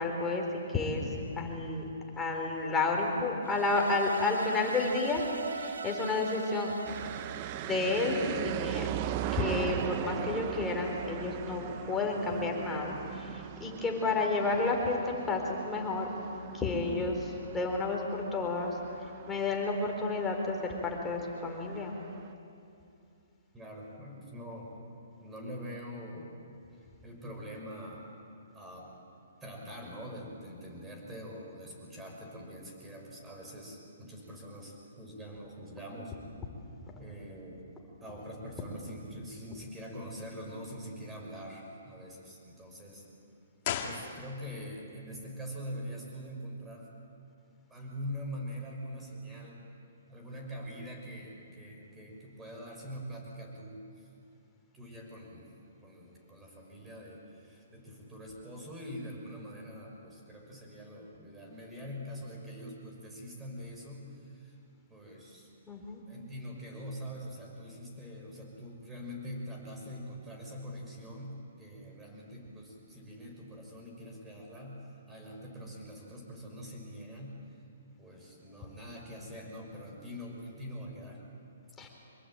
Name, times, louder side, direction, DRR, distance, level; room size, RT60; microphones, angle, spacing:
voice 1, 0.0-1.8 2.1-6.8 7.6-8.9 9.3-16.1 16.5-21.9 65.7-66.0 81.8-81.9, left 3 dB, 10° left, 0 dB, 4.2 m, -31 dB
sound 1, 3.4-8.6, right 5 dB, 85° right, 2.0 m, -41 dB
sound 2, 6.9-22.3, right 12 dB, 35° right, 0.8 m, -39 dB
voice 2, 23.5-24.7 25.2-26.3 26.8-28.1 28.5-29.0 29.4-36.1 36.9-37.6 38.0-43.1 43.8-46.9 47.7-49.6 50.1-54.1 54.7-64.6 64.9-65.7 66.1-77.4 78.0-81.2, equal, 10° right, 0 dB, 6.1 m, -44 dB
sound 3, 43.6-44.7 45.0-45.1, left 8 dB, 40° left, 2.3 m, -36 dB
25.5 x 21.5 x 9.1 m, 2.6 s
hypercardioid pair, 145°, 0 cm